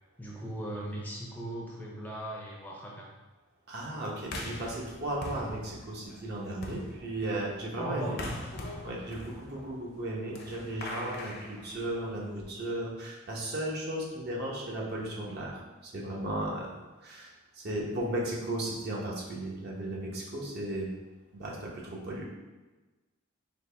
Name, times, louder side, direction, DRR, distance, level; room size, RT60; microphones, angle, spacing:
voice 1, 0.2-3.1 7.7-8.2, right 1 dB, 10° left, -3 dB, 0.5 m, -38 dB
voice 2, 3.7-8.2 8.8-16.7 17.0-20.9 21.3-21.7 22.0-22.3, right 1 dB, 50° right, -3 dB, 0.9 m, -35 dB
sound 1, 4.3-12.3, left 1 dB, 50° left, 0.6 m, -43 dB
4.0 x 2.9 x 3.3 m, 1.2 s
head